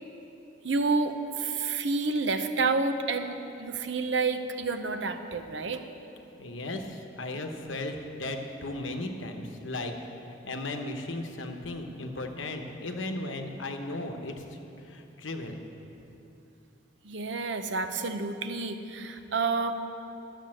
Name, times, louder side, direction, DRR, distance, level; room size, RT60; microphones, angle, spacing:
voice 1, 0.6-5.8 17.0-19.8, right 3 dB, 65° right, 8 dB, 0.7 m, -29 dB
voice 2, 6.4-9.9 10.4-14.4 14.8-15.6, left 2 dB, 85° left, 5 dB, 1.0 m, -36 dB
11.5 x 6.7 x 7.6 m, 3.0 s
head